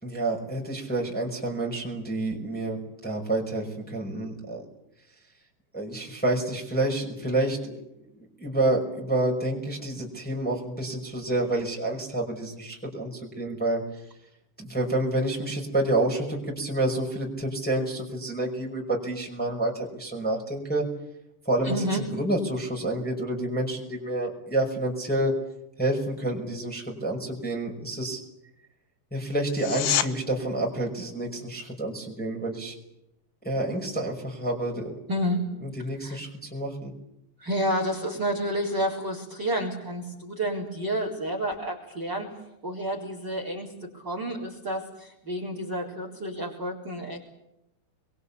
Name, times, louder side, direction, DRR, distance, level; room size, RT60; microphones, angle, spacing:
voice 1, 0.0-4.6 5.7-7.8 8.1-13.8 14.6-20.8 21.4-25.3 25.8-28.2 29.1-32.7 33.4-34.9 35.6-36.9, right 1 dB, ahead, -1 dB, 4.9 m, -28 dB
voice 2, 21.6-22.0 35.1-35.5 36.0-36.2 37.4-42.3 42.6-47.2, equal, 25° right, 1 dB, 4.5 m, -30 dB
sound 1, 29.5-30.1 41.5-41.6, left 12 dB, 85° left, 3.5 m, -26 dB
27.0 x 22.5 x 8.5 m, 0.85 s
omnidirectional pair, 5.1 m